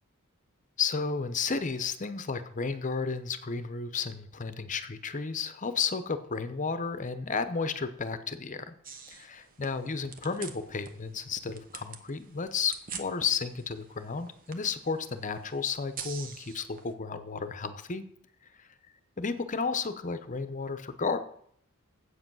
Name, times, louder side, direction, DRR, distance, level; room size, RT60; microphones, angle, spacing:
voice 1, 0.8-8.7 9.1-18.0 18.4-18.7 19.2-21.2, left 5 dB, 35° left, 11 dB, 0.7 m, -33 dB
sound 1, 8.8-16.9, right 6 dB, 40° right, 0.9 m, -46 dB
8.0 x 7.8 x 6.2 m, 0.65 s
head